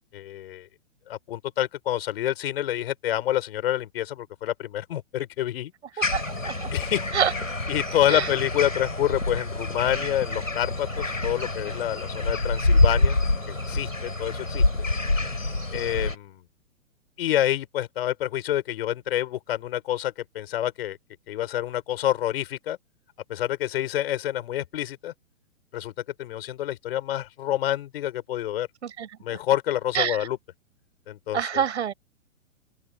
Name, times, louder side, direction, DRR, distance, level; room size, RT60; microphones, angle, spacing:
voice 1, 0.1-0.7 1.1-6.1 6.7-7.1 7.7-13.2 13.5-14.6 15.7-16.4 17.2-21.0 21.3-22.8 23.3-25.1 25.7-25.9 26.2-28.7 29.2-30.4 31.1-31.6, left 12 dB, 50° left, 5.1 m, -28 dB
sound 1, 6.0-16.2, left 2 dB, 90° left, 6.8 m, -26 dB
voice 2, 6.0-6.7 7.1-7.3 8.1-8.3 28.8-29.4 29.9-30.3 31.3-31.9, right 8 dB, 60° right, 7.0 m, -27 dB
open air
figure-of-eight pair, 120°, 39 cm